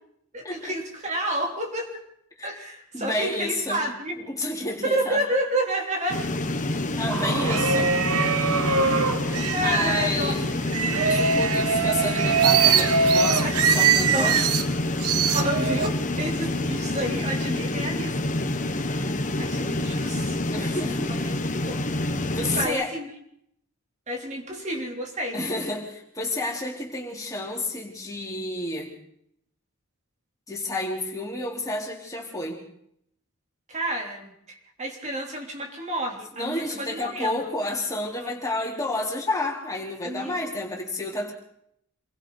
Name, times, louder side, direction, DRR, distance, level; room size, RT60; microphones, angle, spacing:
voice 1, 0.3-2.0 2.4-4.2 4.8-6.3 8.7-9.1 9.5-10.8 14.1-14.6 15.3-18.2 18.7-21.4 21.7-21.8 22.6-23.1 24.1-25.4 33.7-37.5 38.2-38.3 40.0-40.3, right 1 dB, 30° right, 1 dB, 3.6 m, -30 dB
voice 2, 2.9-3.8 4.3-5.2 7.0-7.9 9.6-10.4 11.0-14.4 20.5-21.1 22.2-22.9 25.3-28.9 30.5-32.6 36.3-41.3, left 2 dB, 15° left, -1 dB, 4.3 m, -30 dB
sound 1, 6.1-22.7, left 1 dB, 35° left, 1.4 m, -27 dB
sound 2, 7.1-10.1 10.7-14.7 15.0-15.9, right 5 dB, 90° right, 1.4 m, -22 dB
27.5 x 23.5 x 4.2 m, 0.72 s
head